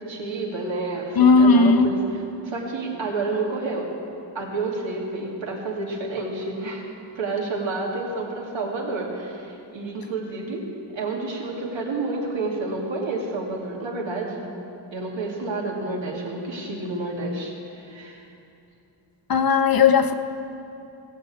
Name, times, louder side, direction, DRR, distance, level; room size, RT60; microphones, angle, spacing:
voice 1, 0.0-2.0 2.4-3.9 4.3-6.9 7.1-10.6 10.9-14.4 14.9-18.2, right 3 dB, 85° right, -2 dB, 2.6 m, -29 dB
voice 2, 1.2-2.0 19.3-20.1, left 4 dB, 55° left, 9 dB, 0.7 m, -16 dB
18.0 x 6.7 x 8.5 m, 2.7 s
wide cardioid pair, 170°, 44 cm